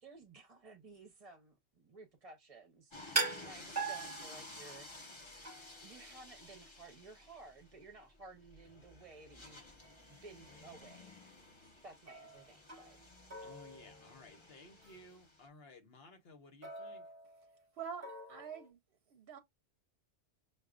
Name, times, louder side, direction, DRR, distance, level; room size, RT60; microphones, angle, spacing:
voice 1, 0.0-2.9 3.4-4.9 5.8-9.6 10.1-11.1 11.6-13.0, right 3 dB, 35° right, 0.8 m, -55 dB
sound 1, 2.9-15.5, left 2 dB, 30° left, 0.9 m, -54 dB
sound 2, 3.2-4.8 5.4-5.9 9.8-9.9 10.5-10.8 12.1-13.1 13.3-14.4 14.8-15.1 16.6-17.6 18.0-18.7, right 3 dB, 15° right, 1.1 m, -41 dB
voice 2, 13.4-17.0, left 2 dB, 65° left, 1.1 m, -57 dB
voice 3, 17.8-18.8 19.1-19.4, right 7 dB, 65° right, 0.8 m, -45 dB
6.3 x 2.3 x 2.4 m
omnidirectional pair, 1.1 m